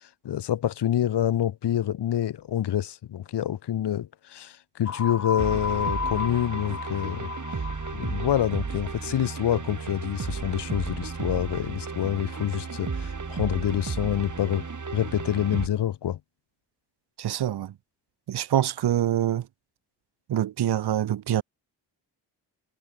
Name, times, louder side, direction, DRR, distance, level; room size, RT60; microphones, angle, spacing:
voice 1, 0.2-7.3 7.9-14.6 14.9-16.2, left 11 dB, 75° left, 1.5 m, -27 dB
sound 1, 4.9-8.5, left 6 dB, 40° left, 1.3 m, -33 dB
sound 2, 5.4-15.7, right 5 dB, 45° right, 6.2 m, -34 dB
voice 2, 17.2-17.7 18.3-19.5 20.3-21.4, right 11 dB, 65° right, 1.0 m, -25 dB
supercardioid pair, 50°, 42 cm